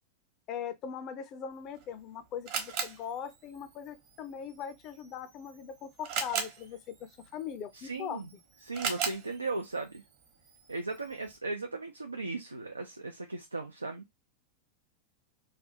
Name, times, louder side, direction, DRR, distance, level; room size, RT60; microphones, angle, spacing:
voice 1, 0.5-8.4, left 8 dB, 35° left, 0.5 m, -40 dB
Camera, 1.5-11.4, right 6 dB, 45° right, 1.0 m, -40 dB
voice 2, 7.7-8.3 8.6-9.9 10.7-14.0, right 3 dB, 80° right, 0.4 m, -37 dB
3.2 x 2.4 x 2.6 m
figure-of-eight pair, 90°, 0 cm